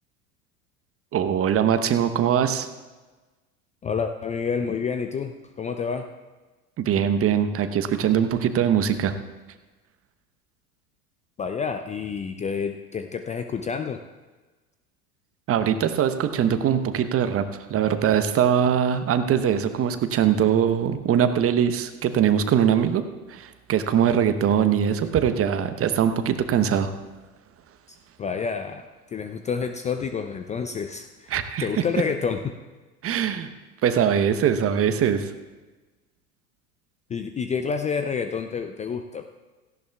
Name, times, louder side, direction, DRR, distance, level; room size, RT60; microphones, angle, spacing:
voice 1, 1.1-2.7 6.8-9.1 15.5-23.0 23.3-26.9 31.3-31.7 33.0-33.5 33.8-35.3, right 8 dB, 30° right, 9 dB, 1.0 m, -22 dB
voice 2, 3.8-6.0 11.4-14.0 28.2-28.8 29.1-31.3 31.6-32.4 37.1-39.2, left 6 dB, 15° left, 7 dB, 0.5 m, -28 dB
17.0 x 14.5 x 2.3 m, 1.2 s
figure-of-eight pair, 80°, 46 cm